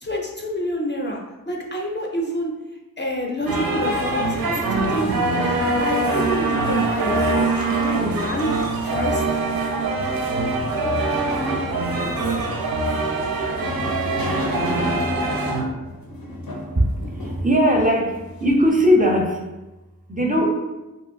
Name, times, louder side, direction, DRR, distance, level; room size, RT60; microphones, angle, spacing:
voice 1, 0.0-2.5 3.0-8.5 8.8-9.2, equal, 35° left, -1 dB, 0.4 m, -28 dB
sound 1, 3.5-15.6, right 2 dB, 90° right, 0.5 m, -23 dB
sound 2, 10.4-18.6, left 1 dB, 90° left, 0.6 m, -33 dB
voice 2, 17.4-18.1 18.4-19.4 20.1-20.5, equal, 25° right, 0 dB, 0.4 m, -18 dB
2.9 x 2.6 x 2.5 m, 1.1 s
wide cardioid pair, 75°, 34 cm